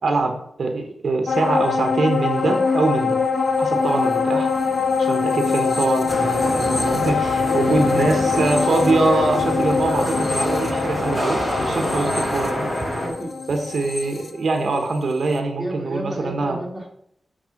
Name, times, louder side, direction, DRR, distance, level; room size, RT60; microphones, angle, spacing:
voice 1, 0.0-3.2 3.6-4.5 5.0-12.7 13.5-16.6, right 3 dB, 60° right, 4 dB, 1.2 m, -23 dB
sound 1, 1.3-15.0 15.3-15.4, left 5 dB, 40° left, 0.9 m, -23 dB
sound 2, 2.2-8.7, right 3 dB, 45° right, 1.0 m, -37 dB
sound 3, 6.1-13.1, equal, 25° left, 4.0 m, -27 dB
voice 2, 7.6-8.1 12.9-13.6 15.6-16.9, right 1 dB, 5° right, -3 dB, 2.4 m, -31 dB
9.0 x 4.7 x 5.9 m, 0.70 s
wide cardioid pair, 170°, 0 cm